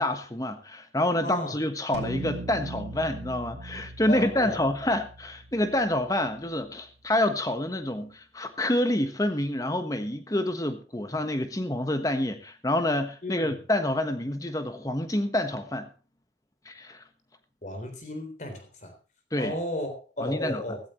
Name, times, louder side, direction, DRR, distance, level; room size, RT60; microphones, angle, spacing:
voice 1, 0.0-15.9 16.6-17.0 19.3-19.5 20.2-20.6, left 1 dB, 20° left, 1.3 m, -28 dB
voice 2, 1.2-1.6 4.1-4.6 13.2-13.6 17.6-18.9 19.4-20.8, left 1 dB, 45° left, 3.7 m, -34 dB
sound 1, 1.9-6.5, right 2 dB, 90° right, 2.3 m, -40 dB
16.0 x 15.0 x 3.1 m
head